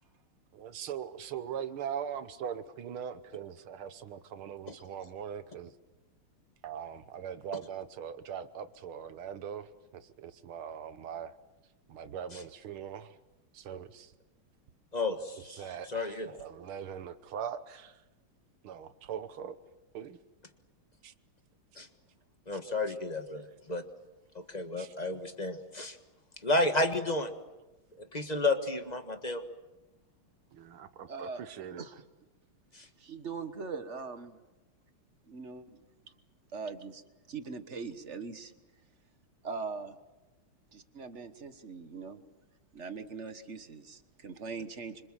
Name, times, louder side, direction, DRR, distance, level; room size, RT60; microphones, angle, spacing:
voice 1, 0.5-5.7 6.6-11.4 11.9-13.2 13.5-14.1 15.5-17.9 18.6-19.6 19.9-20.2 21.0-21.1 23.5-23.6 24.8-24.9 30.5-31.9, right 8 dB, 75° right, 12 dB, 1.9 m, -41 dB
voice 2, 14.9-15.6 15.9-16.3 21.8-21.9 22.5-23.8 24.3-26.0 26.4-27.3 28.0-29.4 32.7-32.8, left 2 dB, 20° left, 7 dB, 1.3 m, -31 dB
voice 3, 31.1-31.4 31.8-31.9 33.0-34.4 35.3-35.8 36.5-37.0 37.3-38.5 39.4-40.0 40.7-42.2 42.7-45.1, right 4 dB, 35° right, 10 dB, 1.4 m, -41 dB
26.5 x 26.0 x 7.5 m, 1.1 s
omnidirectional pair, 2.4 m